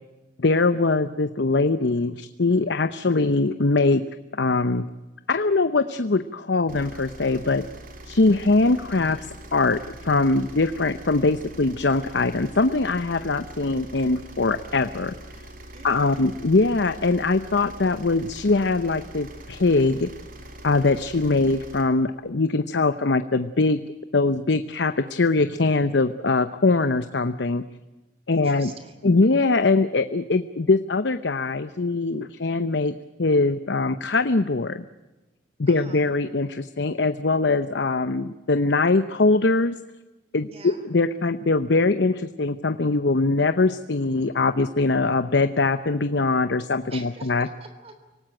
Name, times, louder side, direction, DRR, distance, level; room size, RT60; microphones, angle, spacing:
voice 1, 0.4-4.0 4.3-4.8 5.3-7.6 8.1-9.8 10.0-15.1 15.8-20.1 20.6-23.8 24.1-27.6 28.3-28.7 29.0-34.8 35.6-39.7 40.3-47.5, left 3 dB, 70° left, 11 dB, 0.8 m, -22 dB
Marine diesel engine, 6.7-21.8, right 1 dB, 50° right, 3.7 m, -43 dB
voice 2, 15.7-16.3 28.3-29.1 35.7-36.1 40.4-40.8 46.9-48.0, right 3 dB, 35° right, 7 dB, 3.4 m, -44 dB
26.0 x 18.0 x 8.9 m, 1.1 s
head